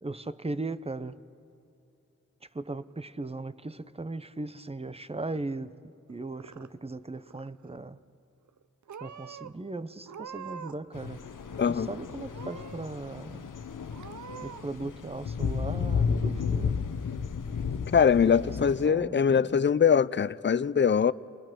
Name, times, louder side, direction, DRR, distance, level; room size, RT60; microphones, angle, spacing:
voice 1, 0.0-1.2 2.4-8.0 9.0-11.2 11.7-13.5 14.4-16.9 18.1-19.6, right 2 dB, 20° right, 0.8 m, -38 dB
Purr / Meow, 6.1-7.0 7.2-7.8 8.5-8.6 8.9-9.5 10.0-10.9 11.2-11.9 12.3-12.9 13.3-13.4 13.9-14.7, right 7 dB, 70° right, 0.6 m, -45 dB
sound 1, 10.9-18.9, left 6 dB, 85° left, 0.8 m, -33 dB
voice 2, 17.9-21.1, left 7 dB, 35° left, 0.5 m, -22 dB
29.0 x 20.5 x 6.1 m
cardioid pair, 45°, 30 cm